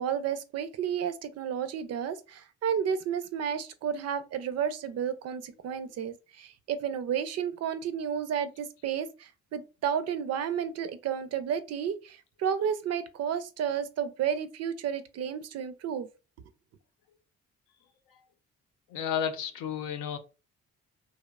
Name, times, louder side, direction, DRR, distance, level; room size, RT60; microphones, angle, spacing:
voice 1, 0.0-16.1, right 8 dB, 55° right, 0.4 m, -32 dB
voice 2, 18.9-20.2, left 8 dB, 85° left, 0.6 m, -32 dB
2.8 x 2.1 x 2.3 m
cardioid pair, 90°, 30 cm